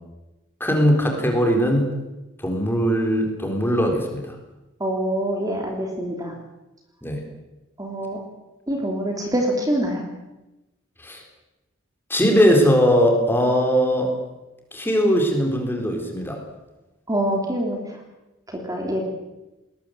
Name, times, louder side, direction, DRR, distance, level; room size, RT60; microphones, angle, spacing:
voice 1, 0.6-1.9 2.4-4.4 7.0-7.2 11.0-11.2 12.1-14.1 14.7-16.4, equal, 10° left, 3 dB, 4.1 m, -20 dB
voice 2, 4.8-6.3 7.8-8.2 8.7-10.0 17.1-18.0 18.5-19.0, right 1 dB, 20° right, 1 dB, 3.1 m, -25 dB
21.0 x 20.0 x 7.8 m, 1.0 s
head